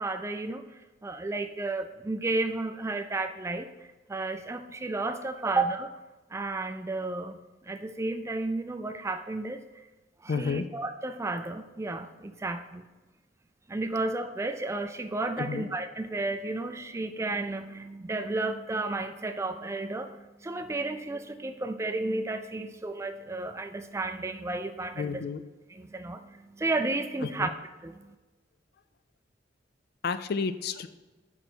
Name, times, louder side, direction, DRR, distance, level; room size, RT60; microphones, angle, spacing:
voice 1, 0.0-3.7 4.1-5.9 6.3-9.6 10.2-12.8 13.7-25.2 25.8-27.5 27.8-28.1, right 2 dB, 15° right, 8 dB, 0.3 m, -32 dB
voice 2, 10.3-10.7 15.4-15.7 24.9-25.4 27.2-27.5 30.0-30.9, left 5 dB, 55° left, 12 dB, 0.4 m, -31 dB
6.1 x 5.1 x 4.5 m, 1.2 s
head